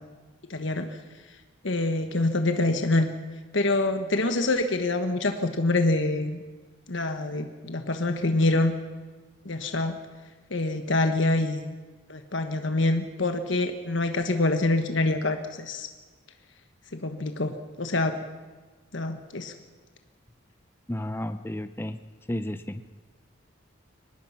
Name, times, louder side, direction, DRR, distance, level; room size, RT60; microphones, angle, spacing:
voice 1, 0.5-0.9 1.6-3.1 3.5-6.4 6.9-8.7 9.4-9.9 10.5-11.6 12.1-15.9 16.9-18.2 18.9-19.5, left 2 dB, 70° left, 7 dB, 1.4 m, -25 dB
voice 2, 20.9-22.0 22.3-22.8, left 1 dB, 10° left, 10 dB, 0.6 m, -32 dB
24.0 x 19.5 x 5.9 m, 1.3 s
head